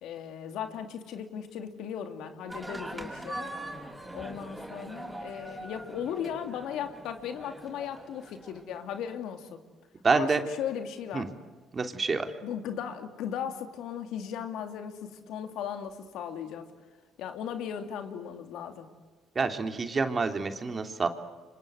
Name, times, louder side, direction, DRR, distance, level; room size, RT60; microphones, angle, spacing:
voice 1, 0.0-3.5 4.1-9.6 10.1-11.3 12.4-16.7 17.2-18.9, left 8 dB, 80° left, 7 dB, 2.8 m, -37 dB
sound 1, 2.5-9.1, right 1 dB, 10° right, 6.8 m, -42 dB
voice 2, 10.0-10.4 11.1-11.3 11.7-12.3 19.3-21.1, right 4 dB, 35° right, 6 dB, 3.0 m, -27 dB
29.0 x 25.0 x 8.2 m, 1.4 s
supercardioid pair, 75°, 0 cm